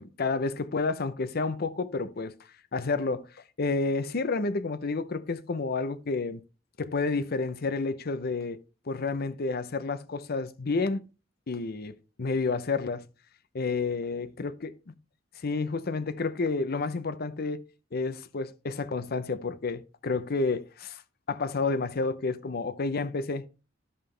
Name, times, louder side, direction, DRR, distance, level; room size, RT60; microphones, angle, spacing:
voice 1, 0.0-2.3 2.7-3.3 3.6-6.4 6.8-8.6 8.9-11.1 11.5-13.0 13.5-14.9 15.4-17.6 17.9-21.0 21.3-23.5, left 3 dB, 55° left, 0.6 m, -30 dB
12.5 x 5.4 x 3.3 m
head